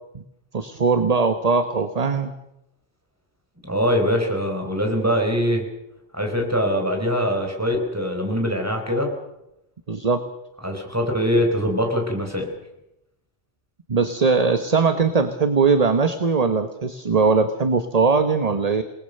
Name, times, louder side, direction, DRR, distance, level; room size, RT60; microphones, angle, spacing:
voice 1, 0.5-2.3 9.9-10.2 13.9-18.8, right 4 dB, 35° right, 9 dB, 1.2 m, -20 dB
voice 2, 3.6-5.6 6.1-9.1 10.6-12.5, equal, 15° right, 3 dB, 4.7 m, -23 dB
28.5 x 19.5 x 6.7 m, 0.86 s
omnidirectional pair, 1.1 m